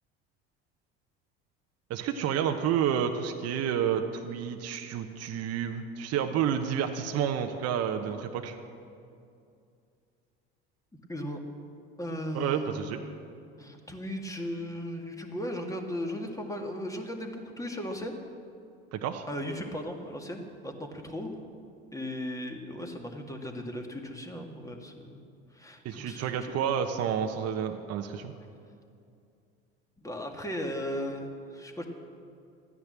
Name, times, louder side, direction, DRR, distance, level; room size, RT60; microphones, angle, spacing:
voice 1, 1.9-8.6 12.3-13.0 18.9-19.2 25.8-28.3, right 8 dB, 55° right, 5 dB, 1.0 m, -30 dB
voice 2, 11.1-11.5 12.0-12.8 13.6-18.2 19.3-21.3 21.9-25.2 25.5-26.5 30.0-31.9, equal, 10° left, 3 dB, 2.0 m, -37 dB
13.5 x 9.8 x 7.5 m, 2.4 s
hypercardioid pair, 75°, 30 cm